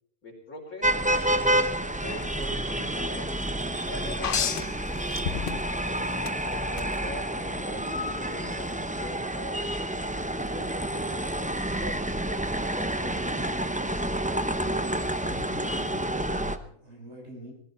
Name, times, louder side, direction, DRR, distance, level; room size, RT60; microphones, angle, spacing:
voice 1, 0.2-3.4 3.9-5.6 6.5-14.1, left 1 dB, 75° left, -1 dB, 5.3 m, -43 dB
sound 1, 0.8-16.6, right 1 dB, 10° right, 0.5 m, -29 dB
sound 2, 4.2-5.8 6.3-6.9 8.5-8.6, left 7 dB, 50° left, 0.8 m, -30 dB
voice 2, 15.3-17.5, left 1 dB, 50° right, -1 dB, 6.5 m, -44 dB
20.0 x 15.5 x 4.4 m, 0.64 s
omnidirectional pair, 1.5 m